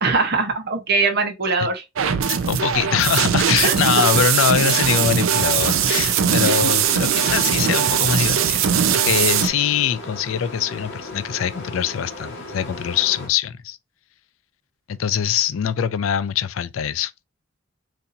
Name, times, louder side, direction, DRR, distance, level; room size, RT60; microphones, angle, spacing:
voice 1, 0.0-1.8 3.6-3.7 6.5-6.9, right 4 dB, 55° right, 0.9 m, -22 dB
sound 1, 2.0-9.5, right 8 dB, 80° right, 0.5 m, -20 dB
voice 2, 2.3-13.8 14.9-17.1, left 8 dB, 80° left, 0.4 m, -23 dB
sound 2, 5.5-13.3, left 2 dB, 60° left, 1.6 m, -36 dB
4.1 x 2.7 x 2.6 m
head